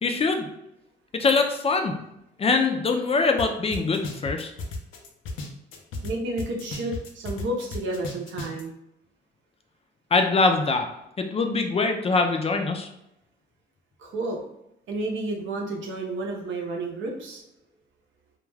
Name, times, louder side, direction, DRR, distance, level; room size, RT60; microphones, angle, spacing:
voice 1, 0.0-0.5 1.1-1.9 2.4-4.5 10.1-10.9 11.2-12.9, left 3 dB, 30° left, 5 dB, 0.4 m, -23 dB
sound 1, 3.4-3.5 3.7-6.1 6.4-8.6, left 3 dB, 85° left, 0.5 m, -34 dB
voice 2, 6.0-8.7 14.0-14.4 14.9-17.4, right 2 dB, 75° right, 0 dB, 0.7 m, -31 dB
2.3 x 2.2 x 3.2 m, 0.82 s
cardioid pair, 90°, 20 cm